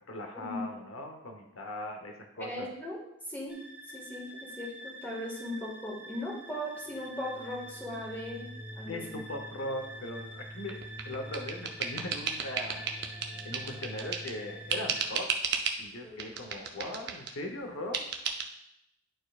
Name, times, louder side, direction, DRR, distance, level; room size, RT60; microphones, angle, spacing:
voice 1, 0.1-2.7 8.9-10.8 11.0-12.9 13.4-15.3 15.8-18.0, left 1 dB, 75° left, 4 dB, 0.9 m, -39 dB
voice 2, 2.4-3.0 3.3-3.6 3.9-8.5 8.7-9.2 16.0-16.2, left 1 dB, 10° left, -4 dB, 1.7 m, -38 dB
sound 1, 3.5-15.1, equal, 5° right, 0.6 m, -45 dB
sound 2, 10.7-14.4 14.7-15.8 16.2-17.4 17.9-18.5, right 6 dB, 50° right, 0.6 m, -34 dB
10.5 x 4.4 x 2.4 m, 0.79 s
head